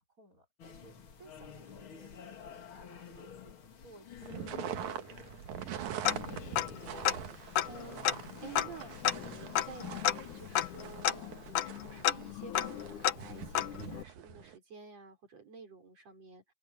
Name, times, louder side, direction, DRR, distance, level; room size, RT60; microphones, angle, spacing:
voice 1, 0.0-3.6 3.8-5.5, right 2 dB, 25° right, 6.2 m, -59 dB
sound 1, 0.6-11.0, left 7 dB, 45° left, 2.5 m, -50 dB
sound 2, 4.2-14.6, right 10 dB, 75° right, 2.7 m, -44 dB
Tick-tock, 6.0-6.8 7.0-7.1 7.5-14.0, left 11 dB, 80° left, 2.6 m, -32 dB
voice 2, 6.6-16.5, right 5 dB, 55° right, 6.3 m, -51 dB
omnidirectional pair, 3.5 m